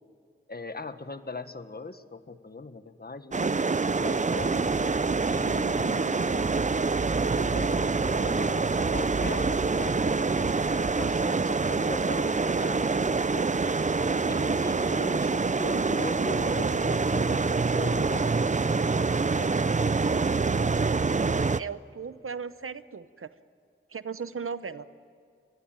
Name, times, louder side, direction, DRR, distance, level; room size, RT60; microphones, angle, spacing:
voice 1, 0.5-3.5 4.0-5.0 5.3-6.5 7.2-10.3 10.7-13.5 14.3-18.8 19.2-19.5, left 3 dB, 45° left, 10 dB, 1.4 m, -40 dB
sound 1, 3.3-21.6, right 4 dB, 35° right, 0.5 m, -26 dB
voice 2, 21.6-23.3 23.9-24.9, right 6 dB, 85° right, 13 dB, 0.9 m, -36 dB
24.5 x 22.0 x 9.0 m, 2.3 s
wide cardioid pair, 55°, 21 cm